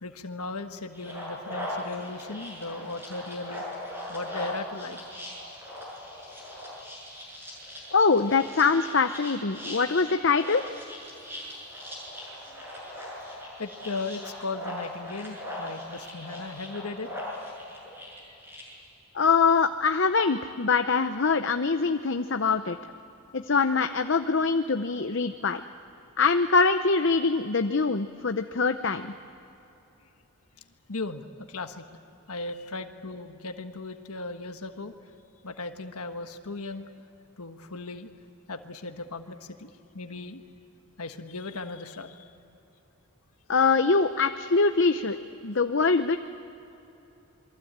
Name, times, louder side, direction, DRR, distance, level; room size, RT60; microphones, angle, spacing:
voice 1, 0.0-3.6 4.1-5.0 11.3-11.4 13.6-17.1 30.9-31.8 32.3-34.9 35.4-36.9 37.4-38.1 38.5-40.4 41.0-42.3, left 3 dB, 85° left, 6 dB, 1.5 m, -37 dB
sound 1, 0.9-18.6, left 1 dB, 10° right, 7.4 m, -39 dB
voice 2, 7.9-10.6 19.1-22.8 23.3-25.6 26.2-29.1 43.5-45.2 45.4-46.2, left 4 dB, 55° left, 8 dB, 0.7 m, -23 dB
28.0 x 23.0 x 8.7 m, 3.0 s
head